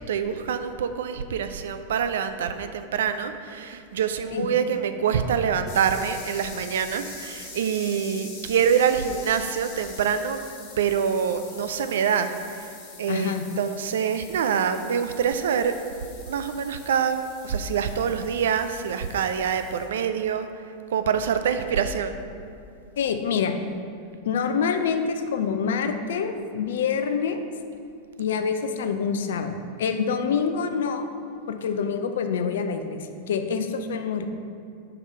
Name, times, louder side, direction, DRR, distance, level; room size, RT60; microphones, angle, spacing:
voice 1, 0.0-10.4 10.8-12.7 13.0-15.7 16.3-20.5 20.9-22.2, right 7 dB, 65° right, 9 dB, 0.3 m, -25 dB
sound 1, 5.7-19.9, left 3 dB, 45° left, 1.4 m, -44 dB
voice 2, 13.1-13.4 23.0-23.5 24.3-27.4 28.2-31.1 31.5-34.3, left 6 dB, 65° left, 7 dB, 0.5 m, -26 dB
4.8 x 4.8 x 5.4 m, 2.5 s
figure-of-eight pair, 90°, 0 cm